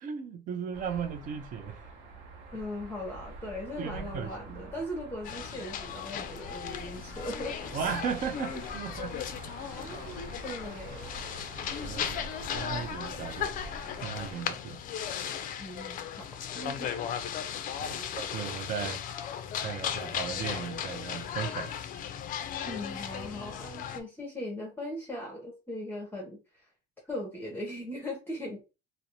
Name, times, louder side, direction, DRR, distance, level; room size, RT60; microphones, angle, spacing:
voice 1, 0.0-1.9 3.8-4.7 7.7-9.2 11.8-12.3 12.5-13.5 14.0-14.8 15.1-15.2 17.8-19.0 19.6-21.7, right 7 dB, 40° right, 0.4 m, -36 dB
sound 1, 0.7-14.4, right 2 dB, 75° right, 0.7 m, -46 dB
voice 2, 2.5-7.7 9.8-11.1 15.6-16.9 17.9-18.2 22.6-26.7 27.0-28.6, left 1 dB, 10° left, 0.7 m, -39 dB
sound 2, 5.2-24.0, left 8 dB, 45° left, 0.4 m, -36 dB
2.5 x 2.0 x 2.8 m
cardioid pair, 115°, 20 cm